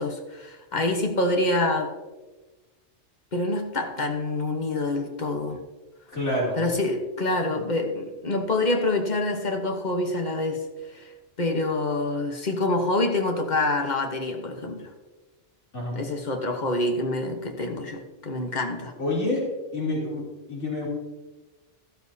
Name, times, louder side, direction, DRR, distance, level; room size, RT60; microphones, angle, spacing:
voice 1, 0.0-1.9 3.3-5.6 6.6-10.6 10.9-11.1 11.4-14.9 15.9-18.9, left 2 dB, 40° left, 3 dB, 1.3 m, -26 dB
voice 2, 6.1-6.6 15.7-16.0 19.0-19.4 19.7-20.2 20.5-20.9, left 1 dB, 80° left, -5 dB, 3.5 m, -27 dB
13.0 x 12.5 x 2.8 m, 1.2 s
omnidirectional pair, 1.2 m